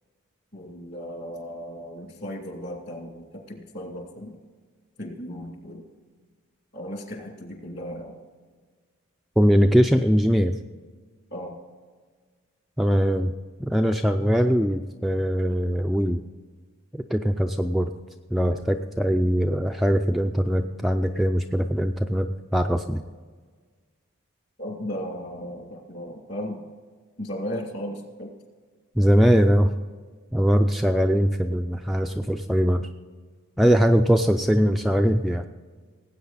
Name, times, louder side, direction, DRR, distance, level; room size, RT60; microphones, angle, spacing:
voice 1, 0.5-4.4 5.0-5.9 6.7-8.2 11.3-11.6 24.6-26.6 27.2-28.3, equal, 50° left, 1 dB, 2.5 m, -36 dB
voice 2, 9.4-10.6 12.8-13.3 13.6-16.2 16.9-17.9 18.3-23.0 29.0-29.8 30.3-32.9 33.6-35.5, equal, ahead, 3 dB, 0.3 m, -21 dB
18.5 x 8.6 x 4.1 m, 1.5 s
head